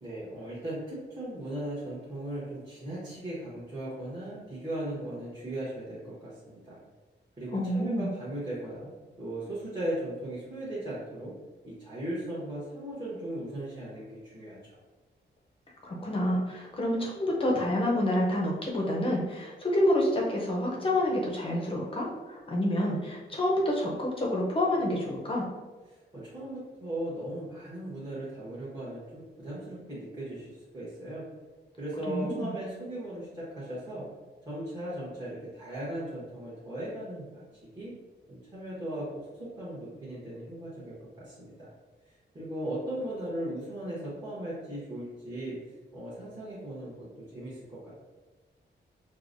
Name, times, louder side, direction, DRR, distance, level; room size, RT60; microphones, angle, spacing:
voice 1, 0.0-6.8 7.4-11.3 11.6-14.8 26.1-31.2 31.8-34.0 34.5-37.5 37.8-37.9 38.3-41.7 42.3-45.6 45.9-47.9, right 1 dB, 20° right, -11 dB, 0.9 m, -37 dB
voice 2, 7.5-8.1 15.8-25.5 32.1-32.5, left 1 dB, 30° left, -2 dB, 0.5 m, -28 dB
4.6 x 2.0 x 2.5 m, 1.3 s
wide cardioid pair, 150°, 19 cm